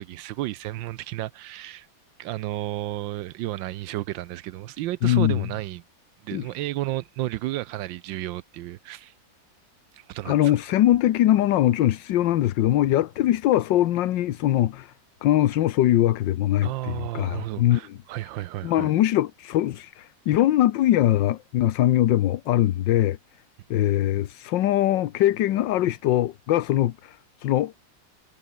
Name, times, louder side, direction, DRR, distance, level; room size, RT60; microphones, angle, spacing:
voice 1, 0.0-1.9 2.2-5.8 6.2-9.1 9.9-10.5 16.6-18.9, right 16 dB, 80° right, 1.3 m, -32 dB
voice 2, 5.0-5.4 6.3-6.5 10.2-14.9 15.2-17.8 18.6-23.2 23.7-27.8, left 13 dB, 75° left, 1.5 m, -22 dB
omnidirectional pair, 2.0 m